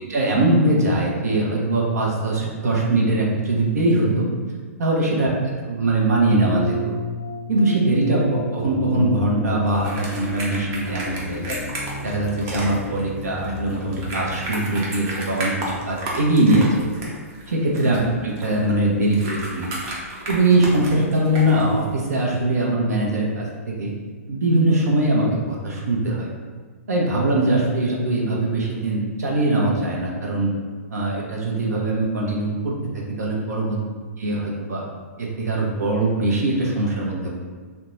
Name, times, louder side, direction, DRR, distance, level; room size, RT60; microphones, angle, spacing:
voice 1, 0.1-4.3 4.8-6.9 7.5-11.6 12.0-16.9 17.5-19.7 20.3-23.9 24.3-26.3 26.9-30.5 30.9-33.8 34.2-34.8 35.2-37.3, right 2 dB, 85° right, -3 dB, 0.7 m, -21 dB
sound 1, 6.4-14.4, left 1 dB, 20° left, 0.3 m, -32 dB
sound 2, 9.6-22.0, right 1 dB, 30° right, 0.6 m, -34 dB
2.5 x 2.1 x 3.0 m, 1.5 s
hypercardioid pair, 140°, 8 cm